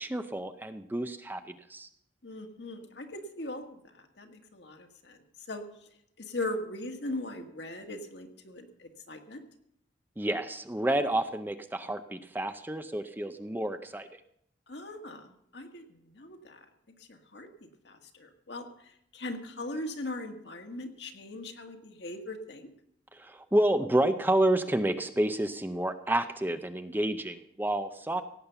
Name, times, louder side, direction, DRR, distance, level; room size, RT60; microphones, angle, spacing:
voice 1, 0.0-1.9 10.2-14.2 23.1-28.2, right 1 dB, 10° right, 10 dB, 0.5 m, -29 dB
voice 2, 2.2-5.2 5.5-5.6 6.2-9.4 14.7-16.6 17.1-17.5 17.8-22.7, left 2 dB, 65° left, 5 dB, 1.6 m, -40 dB
17.0 x 8.5 x 6.9 m, 0.74 s
head